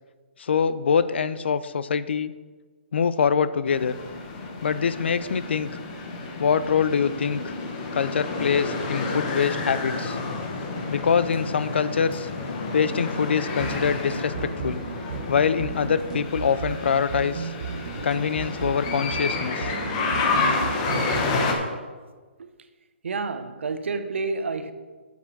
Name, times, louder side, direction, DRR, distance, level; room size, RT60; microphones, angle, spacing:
voice 1, 0.4-2.3 2.9-3.9 4.6-5.7 6.4-7.6 7.9-10.2 10.9-12.3 12.7-14.8 15.3-17.5 18.0-19.7, left 6 dB, 65° left, 0.6 m, -24 dB
sound 1, 3.7-21.5, left 3 dB, 25° left, 1.3 m, -30 dB
sound 2, 13.6-21.6, right 9 dB, 40° right, 0.3 m, -36 dB
voice 2, 23.0-24.7, right 4 dB, 80° right, 1.0 m, -29 dB
8.0 x 7.2 x 6.1 m
hypercardioid pair, 170°, 6 cm